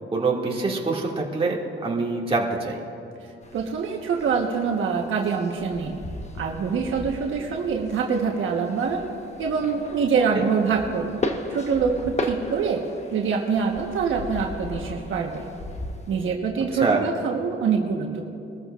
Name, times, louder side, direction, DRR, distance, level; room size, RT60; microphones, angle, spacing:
voice 1, 0.1-2.8 10.4-10.5 16.8-17.0, right 3 dB, 25° right, -3 dB, 2.3 m, -25 dB
sound 1, 3.4-16.3, left 2 dB, 30° left, 1.2 m, -37 dB
voice 2, 3.5-5.9 6.4-9.0 9.4-11.2 11.5-12.8 13.1-15.4 16.1-18.2, right 5 dB, 70° right, 0 dB, 1.3 m, -25 dB
23.0 x 14.0 x 2.5 m, 2.7 s
cardioid pair, 95°, 21 cm